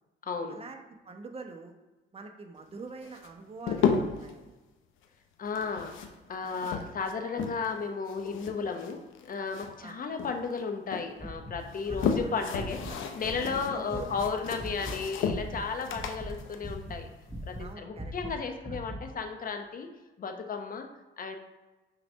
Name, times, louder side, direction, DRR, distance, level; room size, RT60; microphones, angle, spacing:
voice 1, 0.2-0.6 5.4-5.9 6.3-12.8 13.2-17.1 17.4-19.9 20.2-20.9 21.2-21.4, left 5 dB, 45° left, 5 dB, 1.0 m, -34 dB
voice 2, 1.0-1.7 2.1-4.5 9.8-10.0 11.9-13.0 13.7-14.2 17.6-18.1 18.7-18.8, right 4 dB, 30° right, 4 dB, 1.0 m, -45 dB
sound 1, 3.0-4.3 5.5-7.8 8.1-9.9 10.2-11.1 11.6-17.7, left 6 dB, 80° left, 0.7 m, -34 dB
sound 2, 11.2-13.6 13.9-14.3 14.6-15.7 15.9-17.0 17.3-19.0, equal, 5° right, 1.0 m, -40 dB
6.1 x 3.3 x 5.4 m, 1.1 s
cardioid pair, 90°, 20 cm